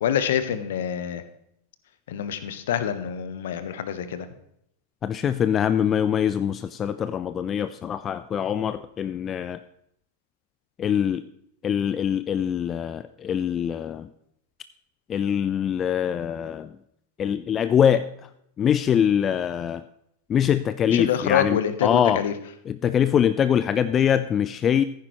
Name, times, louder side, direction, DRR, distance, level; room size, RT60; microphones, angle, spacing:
voice 1, 0.0-1.2 2.1-4.3 20.9-22.3, left 9 dB, 60° left, 12 dB, 1.0 m, -26 dB
voice 2, 5.0-9.6 10.8-11.2 11.6-14.1 15.1-16.7 17.2-18.3 18.6-19.8 20.3-22.2 22.7-24.8, left 9 dB, 25° left, 13 dB, 0.4 m, -23 dB
15.0 x 9.4 x 3.1 m, 0.75 s
figure-of-eight pair, 90°, 0 cm